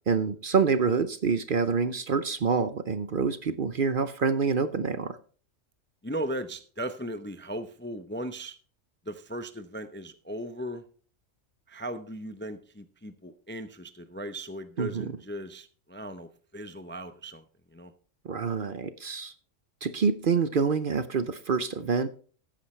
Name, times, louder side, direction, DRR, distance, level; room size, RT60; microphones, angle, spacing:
voice 1, 0.1-5.2 14.8-15.1 18.2-19.3 19.8-22.1, right 5 dB, 50° right, 12 dB, 0.8 m, -26 dB
voice 2, 6.0-8.6 9.0-10.8 11.7-17.9, right 1 dB, 15° left, 10 dB, 0.5 m, -37 dB
14.0 x 10.0 x 3.2 m, 0.41 s
omnidirectional pair, 1.3 m